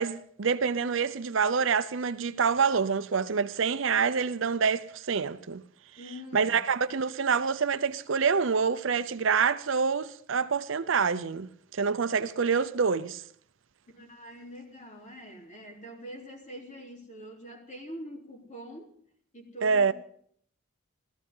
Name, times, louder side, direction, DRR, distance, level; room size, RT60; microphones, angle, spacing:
voice 1, 0.0-5.6 6.3-13.2 19.6-19.9, right 5 dB, 60° right, 0.6 m, -26 dB
voice 2, 6.0-6.6 13.9-18.9 19.3-19.9, equal, 35° left, 3.6 m, -44 dB
16.5 x 14.0 x 5.5 m
head